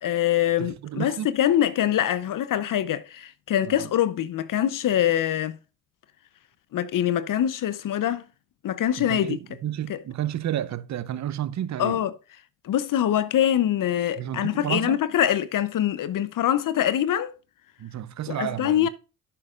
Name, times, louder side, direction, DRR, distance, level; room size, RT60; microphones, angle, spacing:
voice 1, 0.0-5.6 6.7-8.2 8.6-9.4 9.9-10.0 11.8-12.1 12.6-17.3 18.3-18.9, left 11 dB, 55° left, 0.7 m, -24 dB
voice 2, 0.6-1.3 3.6-3.9 9.0-12.0 14.2-15.0 17.8-18.9, right 11 dB, 45° right, 0.7 m, -31 dB
10.0 x 7.6 x 2.4 m
hypercardioid pair, 55°, 40 cm